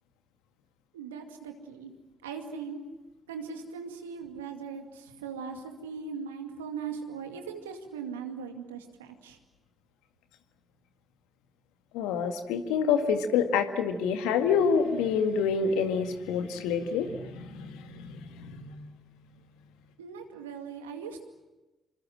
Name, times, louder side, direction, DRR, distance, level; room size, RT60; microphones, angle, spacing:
voice 1, 0.9-1.9 2.2-2.8 3.3-9.4 20.0-21.2, right 6 dB, 90° right, 4 dB, 2.2 m, -39 dB
voice 2, 11.9-18.9, left 6 dB, 75° left, 6 dB, 2.0 m, -27 dB
27.0 x 25.0 x 7.7 m, 1.1 s
hypercardioid pair, 45°, 0 cm